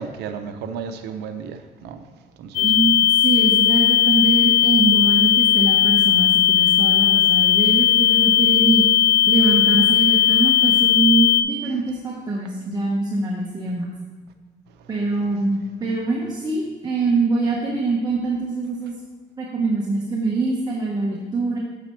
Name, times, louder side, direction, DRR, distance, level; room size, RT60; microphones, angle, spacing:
voice 1, 0.0-2.0 2.4-2.7, right 6 dB, 80° right, 8 dB, 0.7 m, -33 dB
sound 1, 2.5-11.4, left 11 dB, 80° left, 0.7 m, -17 dB
voice 2, 2.6-8.8 9.3-13.9 14.9-19.0 19.4-21.6, right 3 dB, 25° right, -4 dB, 1.2 m, -23 dB
8.8 x 6.9 x 3.2 m, 1.4 s
cardioid pair, 110°, 17 cm